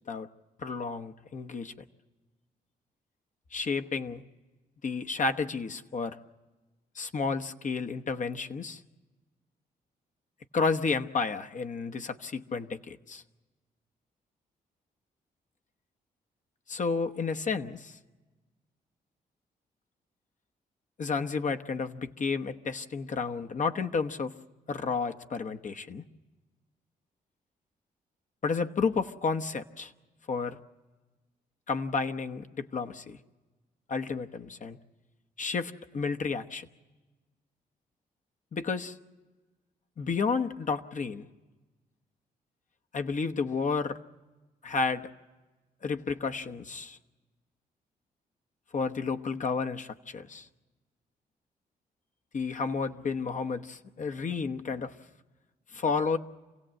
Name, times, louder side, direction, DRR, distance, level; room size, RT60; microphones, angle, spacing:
voice 1, 0.6-1.7 3.5-4.2 4.8-6.2 6.9-8.8 10.5-13.2 16.7-18.0 21.0-24.3 24.7-26.0 28.4-29.9 30.3-30.6 31.7-33.2 33.9-34.8 35.4-36.7 38.5-39.0 40.0-41.3 42.9-44.0 44.6-45.1 45.8-47.0 48.7-50.5 52.3-54.9 55.7-56.2, left 4 dB, 50° left, 6 dB, 1.0 m, -31 dB
27.0 x 16.5 x 7.7 m, 1.2 s
supercardioid pair, 60°, 16 cm